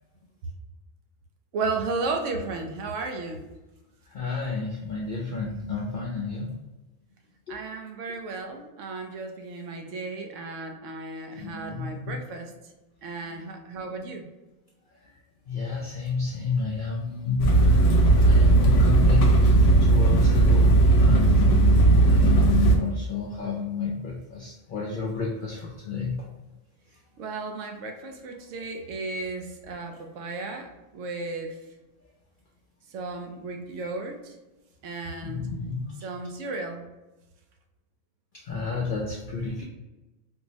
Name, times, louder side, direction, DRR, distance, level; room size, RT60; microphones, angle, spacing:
voice 1, 1.5-3.5 7.5-12.7 13.0-14.3 27.2-31.6 32.9-34.4 34.8-35.5 36.0-36.9, right 3 dB, 80° right, 4 dB, 0.9 m, -34 dB
voice 2, 4.1-6.5 7.5-7.6 11.4-12.2 15.5-18.0 18.2-21.8 22.1-26.3 35.2-35.8 38.3-39.6, left 5 dB, 60° left, -3 dB, 0.5 m, -31 dB
sound 1, 17.4-22.8, right 2 dB, 80° left, 1.0 m, -17 dB
4.4 x 2.0 x 2.7 m, 1.1 s
omnidirectional pair, 1.3 m